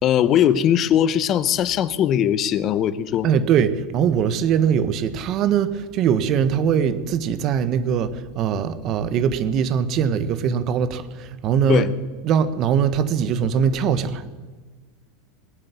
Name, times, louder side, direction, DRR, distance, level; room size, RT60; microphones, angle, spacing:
voice 1, 0.0-3.3 11.7-11.9, left 10 dB, 40° left, 17 dB, 0.8 m, -20 dB
voice 2, 3.2-11.9 12.2-14.2, right 7 dB, 45° right, 12 dB, 1.3 m, -21 dB
19.5 x 7.7 x 9.6 m, 1.3 s
supercardioid pair, 115°, 0 cm